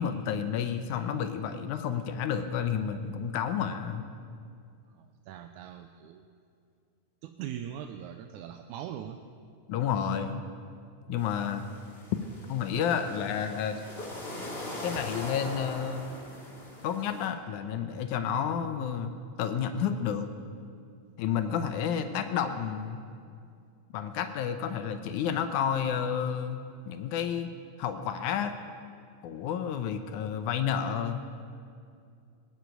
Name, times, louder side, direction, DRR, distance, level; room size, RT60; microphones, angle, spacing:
voice 1, 0.0-4.1 9.7-10.4 11.1-11.6 12.5-13.8 14.8-16.1 16.8-20.3 21.2-23.0 23.9-26.6 26.9-27.5 27.8-28.5 29.2-31.2, left 8 dB, 85° left, 8 dB, 2.2 m, -30 dB
voice 2, 4.9-6.2 7.2-9.2, right 10 dB, 85° right, 6 dB, 2.1 m, -41 dB
sound 1, 11.2-17.3, left 1 dB, 20° left, 2.3 m, -41 dB
19.5 x 8.1 x 9.0 m, 2.3 s
omnidirectional pair, 3.4 m